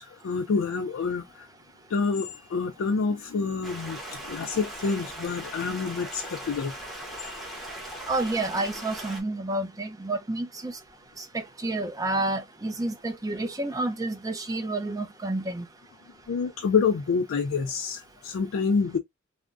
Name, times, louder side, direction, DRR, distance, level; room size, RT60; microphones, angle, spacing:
voice 1, 0.0-1.5 1.9-6.7 7.2-7.4 16.3-19.0, left 5 dB, 70° left, 0.4 m, -27 dB
Stream, 3.6-9.2, right 1 dB, ahead, 0.9 m, -39 dB
voice 2, 8.1-10.7 11.2-15.6, right 2 dB, 15° right, 0.5 m, -30 dB
3.4 x 2.0 x 2.4 m
head